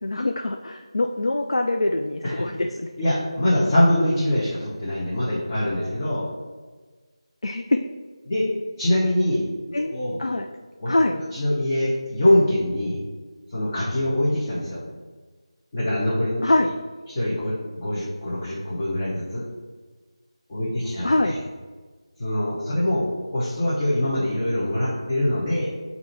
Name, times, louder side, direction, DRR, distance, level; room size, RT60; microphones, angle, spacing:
voice 1, 0.0-2.9 7.4-7.8 9.7-10.5 10.9-11.2 16.4-16.7 21.0-21.3, left 2 dB, 60° left, 5 dB, 0.4 m, -24 dB
voice 2, 3.0-6.3 8.3-8.5 8.8-9.5 9.9-10.2 10.8-13.0 13.5-14.8 15.7-16.4 17.1-19.4 20.5-21.4 22.2-25.7, left 1 dB, 25° left, -8 dB, 1.1 m, -23 dB
7.4 x 2.8 x 4.5 m, 1.4 s
figure-of-eight pair, 165°, 3 cm